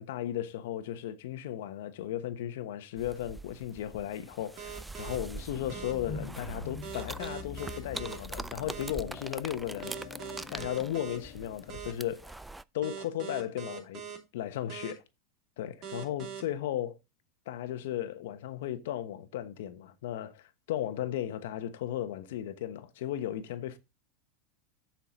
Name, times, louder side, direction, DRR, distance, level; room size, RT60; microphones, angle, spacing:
voice 1, 0.0-9.9 10.5-12.4 12.7-14.0 14.3-15.0 15.6-17.0 17.5-23.8, left 11 dB, 75° left, 1.2 m, -35 dB
sound 1, 3.0-12.6, right 2 dB, 5° right, 0.3 m, -44 dB
sound 2, 4.6-5.2 5.7-5.9 6.8-8.2 8.7-8.9 9.8-11.2 11.7-11.9 12.8-14.2 14.7-14.9 15.8-16.4, right 8 dB, 45° right, 2.8 m, -41 dB
sound 3, 5.4-11.7, left 5 dB, 50° left, 1.7 m, -45 dB
7.2 x 5.8 x 5.1 m
hypercardioid pair, 115°, 0 cm